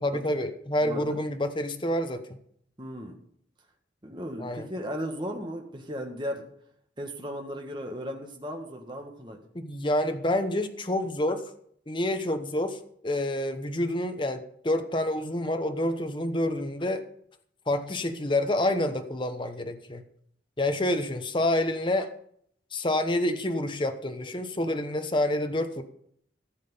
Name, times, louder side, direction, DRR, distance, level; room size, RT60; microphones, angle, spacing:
voice 1, 0.0-2.2 4.4-4.7 9.5-11.4 11.9-17.0 17.7-20.0 20.6-22.1 22.7-25.8, left 1 dB, 25° left, 8 dB, 1.0 m, -28 dB
voice 2, 0.8-1.3 2.8-3.2 4.0-6.5 7.0-9.4, equal, 25° right, 3 dB, 1.7 m, -36 dB
14.5 x 7.4 x 5.5 m, 0.66 s
head